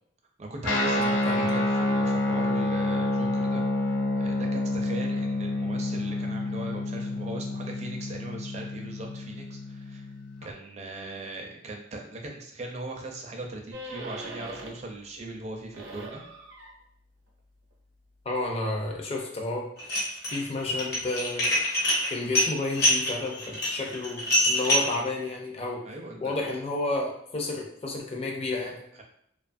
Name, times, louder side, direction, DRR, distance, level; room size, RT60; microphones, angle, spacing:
voice 1, 0.4-10.1 10.4-16.2 25.9-26.3 28.9-29.0, right 2 dB, 35° right, 2 dB, 0.4 m, -39 dB
Guitar, 0.6-10.5, left 2 dB, 90° left, 0.5 m, -28 dB
sound 1, 13.7-15.0 15.3-19.0, right 1 dB, 85° right, 0.6 m, -43 dB
voice 2, 18.2-19.7 20.2-21.6 22.1-25.8 26.2-28.8, left 2 dB, 35° left, 0 dB, 0.5 m, -31 dB
Dishes pots and pans, 19.8-20.4 20.7-25.0, left 1 dB, 60° left, 0.8 m, -25 dB
2.6 x 2.3 x 2.5 m, 0.69 s
head